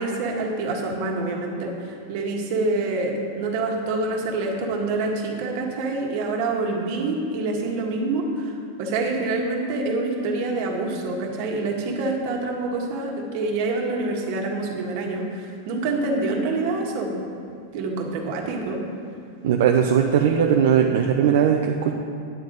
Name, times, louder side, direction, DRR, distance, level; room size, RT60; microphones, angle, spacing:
voice 1, 0.0-17.3 17.7-18.8, right 3 dB, 50° right, 0 dB, 1.6 m, -26 dB
voice 2, 19.4-21.9, right 8 dB, 65° right, 2 dB, 0.6 m, -19 dB
9.3 x 9.2 x 4.0 m, 2.4 s
supercardioid pair, 160°, 0 cm